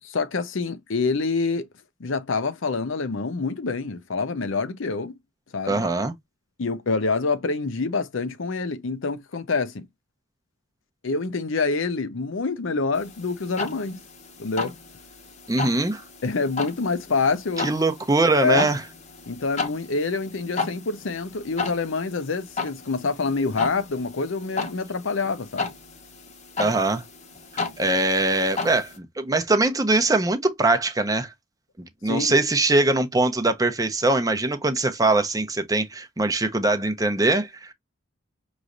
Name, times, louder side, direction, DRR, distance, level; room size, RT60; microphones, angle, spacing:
voice 1, 0.0-1.7 2.0-5.2 5.5-5.8 6.6-9.9 11.0-14.0 14.4-14.8 16.2-17.7 18.4-18.7 19.3-25.7 32.0-32.4, left 4 dB, 70° left, 0.7 m, -26 dB
voice 2, 5.7-6.1 15.5-16.0 17.6-18.8 26.6-27.0 27.8-31.3 32.0-37.7, right 2 dB, 15° right, 0.7 m, -22 dB
sound 1, 12.9-29.0, left 4 dB, 35° left, 0.9 m, -35 dB
6.1 x 3.1 x 2.6 m
head